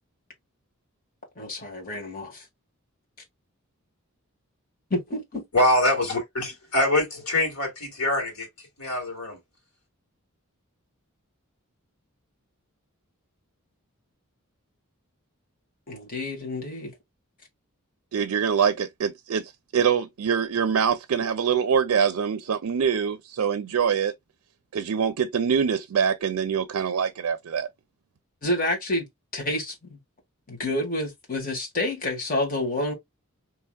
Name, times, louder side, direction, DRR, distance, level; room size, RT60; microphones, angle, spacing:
voice 1, 1.4-2.4 4.9-5.4 15.9-16.9 28.4-29.1 29.3-30.0 30.5-32.9, left 1 dB, 40° left, 1.5 m, -29 dB
voice 2, 5.5-8.5 8.8-9.4, left 1 dB, 85° left, 1.8 m, -24 dB
voice 3, 18.1-24.1 24.7-27.7, right 7 dB, 80° right, 0.4 m, -24 dB
4.6 x 2.9 x 2.2 m
head